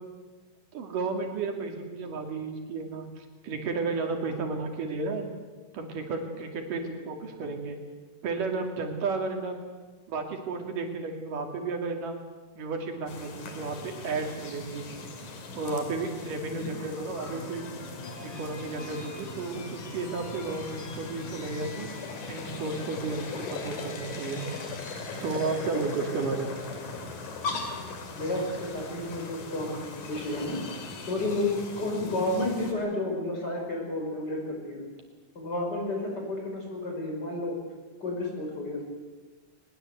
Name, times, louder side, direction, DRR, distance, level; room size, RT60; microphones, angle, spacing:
voice 1, 0.7-5.3 5.7-7.8 8.2-9.6 10.1-12.2 12.6-14.9 15.6-17.6 18.2-21.9 22.3-24.4 25.2-26.6, right 4 dB, 80° right, 3 dB, 4.2 m, -33 dB
sound 1, 13.1-32.7, left 4 dB, 85° left, 4.4 m, -39 dB
voice 2, 16.4-16.7 28.1-30.6 31.1-34.8 35.3-37.6 38.0-38.8, left 2 dB, 30° left, 0 dB, 6.2 m, -31 dB
sound 2, 17.2-33.4, left 3 dB, 60° left, 4.1 m, -49 dB
22.0 x 21.0 x 8.1 m, 1.3 s
omnidirectional pair, 3.7 m